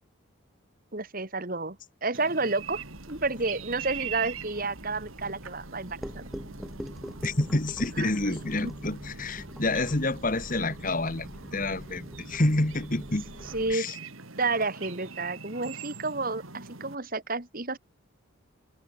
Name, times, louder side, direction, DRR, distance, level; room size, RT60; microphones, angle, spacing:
voice 1, 0.9-2.8 3.1-6.3 8.0-8.4 8.6-8.7 13.5-13.9 14.4-17.8, right 3 dB, 40° right, 2.4 m, -30 dB
sound 1, 2.1-16.9, right 5 dB, 75° right, 3.5 m, -43 dB
sound 2, 2.6-13.7, equal, ahead, 3.9 m, -44 dB
voice 2, 7.2-13.3 13.7-14.0, left 2 dB, 40° left, 1.9 m, -28 dB
head